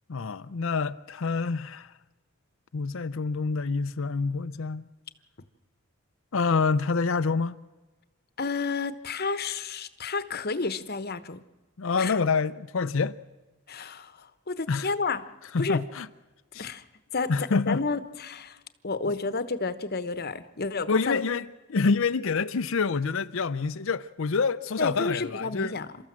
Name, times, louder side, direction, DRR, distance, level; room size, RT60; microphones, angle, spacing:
voice 1, 0.1-1.9 2.7-4.9 6.3-7.6 11.8-13.2 14.7-14.9 15.5-16.1 16.5-16.7 17.3-17.8 19.0-19.1 20.9-25.7, left 4 dB, 65° left, 0.6 m, -27 dB
voice 2, 8.4-11.4 12.0-12.1 13.7-15.3 15.6-15.8 16.6-16.8 17.1-18.6 18.8-21.2 24.8-26.0, left 4 dB, 45° left, 1.0 m, -31 dB
29.0 x 13.5 x 7.5 m
head